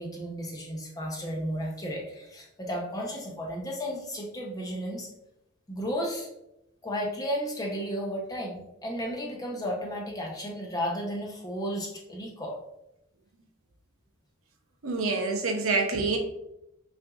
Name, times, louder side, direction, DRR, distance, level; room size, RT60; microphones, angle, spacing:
voice 1, 0.0-5.1 5.7-6.3 6.8-12.6, equal, 15° left, -1 dB, 0.7 m, -33 dB
voice 2, 14.8-16.2, right 3 dB, 80° right, 3 dB, 0.7 m, -26 dB
5.7 x 2.6 x 2.4 m, 0.86 s
head